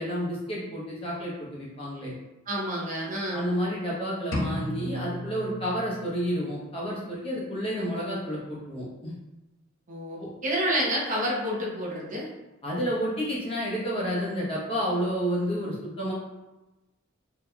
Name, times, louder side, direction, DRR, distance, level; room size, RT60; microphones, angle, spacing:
voice 1, 0.0-2.1 3.3-9.2 10.2-10.3 12.6-16.1, equal, 25° left, -6 dB, 0.9 m, -30 dB
voice 2, 2.5-3.5 9.9-12.3, equal, 40° right, -4 dB, 0.7 m, -29 dB
sound 1, 4.3-6.3, equal, 75° left, 0.6 m, -33 dB
3.8 x 2.9 x 2.2 m, 1.0 s
head